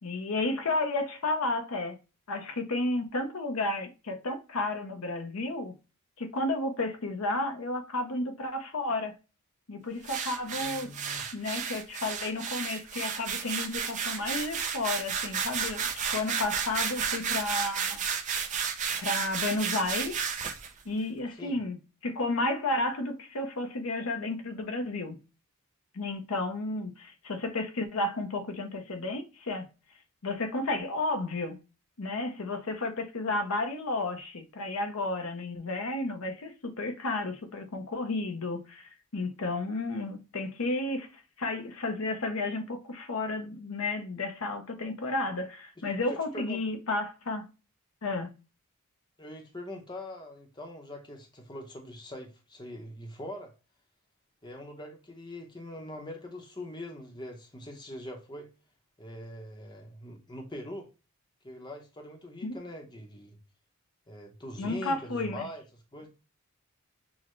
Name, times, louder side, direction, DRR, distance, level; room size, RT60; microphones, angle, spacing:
voice 1, 0.0-2.0 2.3-5.7 6.2-9.1 9.7-10.9 11.3-18.0 19.0-20.2 20.8-21.8 22.0-25.2 25.9-29.7 30.2-31.6 32.0-41.1 41.4-47.5 48.0-48.3 62.4-62.5 64.6-65.5, left 2 dB, 75° left, 0.7 m, -32 dB
sound 1, 10.0-20.7, right 7 dB, 35° right, 0.5 m, -32 dB
voice 2, 10.6-11.3 21.4-21.6 46.1-46.6 49.2-53.5 54.4-58.5 59.0-60.9 61.4-63.4 64.1-66.1, left 1 dB, 20° left, 0.7 m, -43 dB
6.2 x 2.1 x 3.0 m
head